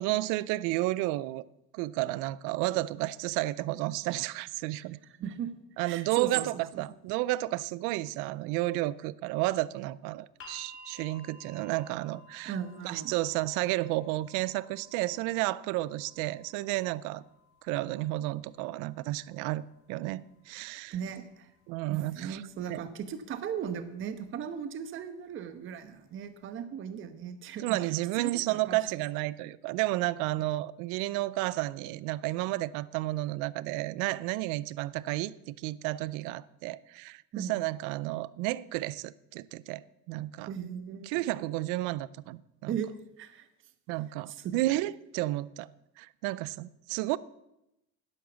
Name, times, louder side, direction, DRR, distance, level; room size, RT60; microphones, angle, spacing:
voice 1, 0.0-1.4 1.7-5.0 5.8-12.5 12.8-17.2 17.6-21.0 21.7-22.4 22.7-22.8 27.6-40.5 41.0-42.8 43.9-45.7 46.0-47.2, right 18 dB, 65° right, 0.6 m, -32 dB
voice 2, 5.2-6.8 12.4-13.1 20.9-21.5 21.9-27.8 28.2-28.8 37.3-37.6 40.5-41.5 42.7-42.9 43.2-43.5 44.3-44.5, right 8 dB, 35° right, 1.1 m, -38 dB
sound 1, 10.4-22.5 23.6-23.7, equal, 40° left, 2.9 m, -56 dB
11.5 x 10.0 x 7.0 m
cardioid pair, 135°, 33 cm